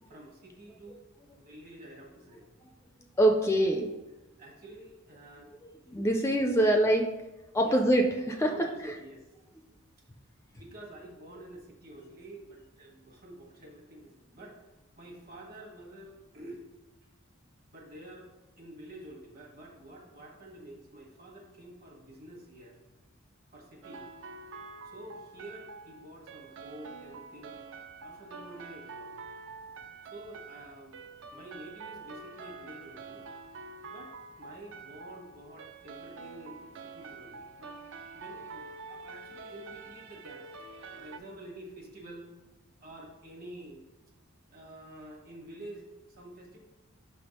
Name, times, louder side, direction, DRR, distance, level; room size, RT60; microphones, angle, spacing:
voice 1, 0.1-1.1 1.4-2.5 4.4-5.5 6.6-6.7 7.6-7.8 8.5-9.3 10.5-14.6 15.0-16.6 17.7-22.8 23.5-24.1 24.8-27.6 28.0-29.2 30.1-31.0 31.3-33.2 33.9-37.7 38.1-40.5 41.0-42.3 42.8-43.8 44.5-46.6, right 1 dB, 45° right, 1 dB, 1.2 m, -48 dB
voice 2, 3.2-4.0 5.6-7.1 7.5-8.9, right 1 dB, 15° left, 4 dB, 0.3 m, -25 dB
sound 1, 23.8-41.2, right 4 dB, 60° right, 0.4 m, -46 dB
5.6 x 3.4 x 5.1 m, 1.1 s
head